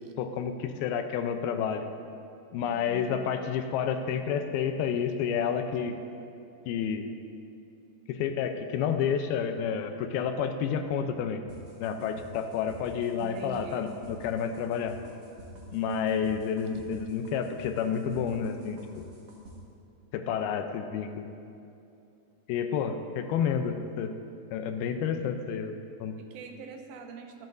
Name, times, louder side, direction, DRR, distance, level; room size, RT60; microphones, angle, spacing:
voice 1, 0.2-1.9 2.5-6.0 6.7-7.1 8.1-11.4 11.8-14.9 15.7-19.1 20.1-21.3 22.5-24.2 24.5-26.1, left 7 dB, 80° left, 7 dB, 2.5 m, -30 dB
voice 2, 2.6-3.3 13.2-14.0 26.2-27.5, right 6 dB, 75° right, 4 dB, 2.5 m, -44 dB
sound 1, 11.5-19.6, right 1 dB, 50° right, 2.0 m, -48 dB
24.0 x 8.0 x 2.6 m, 2.7 s
omnidirectional pair, 4.4 m